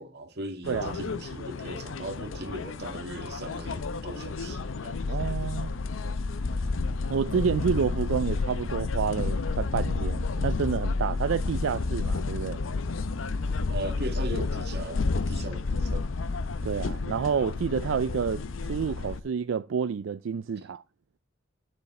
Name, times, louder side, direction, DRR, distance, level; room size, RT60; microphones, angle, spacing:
voice 1, 0.0-5.0 13.7-15.0 15.3-16.1 20.6-20.7, right 1 dB, 55° right, 1.8 m, -38 dB
sound 1, 0.6-19.2, left 3 dB, 90° left, 0.7 m, -31 dB
voice 2, 5.1-5.7 7.1-12.6 16.6-20.8, right 6 dB, 85° right, 0.4 m, -29 dB
9.9 x 6.8 x 4.2 m
head